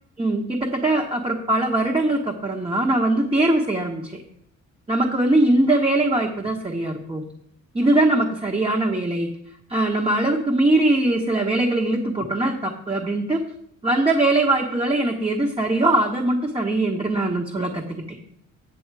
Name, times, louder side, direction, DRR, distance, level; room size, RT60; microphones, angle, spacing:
voice 1, 0.2-4.2 4.9-7.3 7.7-9.3 9.7-13.4 13.8-18.2, right 2 dB, 20° right, 1 dB, 1.3 m, -21 dB
8.9 x 7.1 x 4.8 m, 0.70 s
cardioid pair, 90°, 30 cm